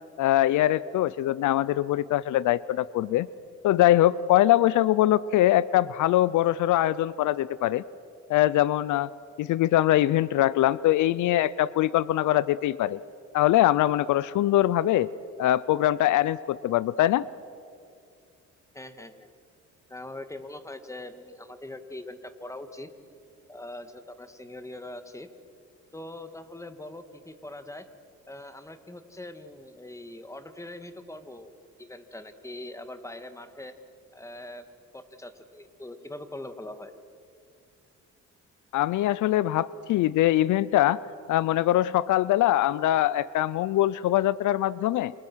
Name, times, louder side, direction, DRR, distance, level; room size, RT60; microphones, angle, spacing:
voice 1, 0.2-3.3 3.6-7.8 8.3-9.1 9.4-13.0 13.3-15.1 15.4-17.2 38.7-41.0 41.3-45.1, left 14 dB, 75° left, 19 dB, 0.6 m, -23 dB
voice 2, 18.7-19.3 19.9-22.9 23.5-25.3 25.9-27.9 28.3-33.8 34.1-34.7 34.9-36.9, left 1 dB, 10° left, 9 dB, 2.0 m, -42 dB
29.0 x 27.0 x 6.3 m, 2.4 s
cardioid pair, 90°, 30 cm